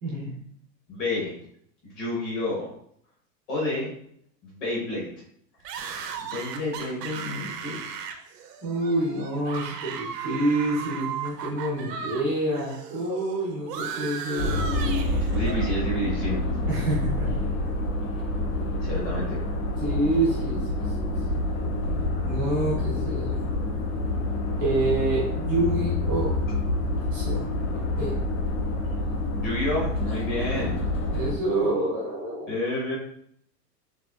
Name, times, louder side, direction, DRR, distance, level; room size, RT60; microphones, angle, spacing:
voice 1, 0.0-0.3 8.6-14.7 16.7-17.5 19.8-20.9 22.2-23.4 24.6-26.4 27.1-27.5 28.0-28.2 31.1-32.5, right 2 dB, 15° right, -7 dB, 0.5 m, -27 dB
voice 2, 0.9-1.3 1.8-2.7 3.5-3.9 4.4-5.1 6.3-7.8 15.3-16.4 18.8-19.4 29.4-30.8 32.5-33.0, left 1 dB, 20° left, -6 dB, 1.0 m, -29 dB
sound 1, 5.6-12.2 12.5-15.7, right 7 dB, 70° right, 0.8 m, -36 dB
sound 2, 14.4-31.4, left 2 dB, 50° left, 0.7 m, -27 dB
6.6 x 2.7 x 2.3 m, 0.69 s
supercardioid pair, 175°, 50 cm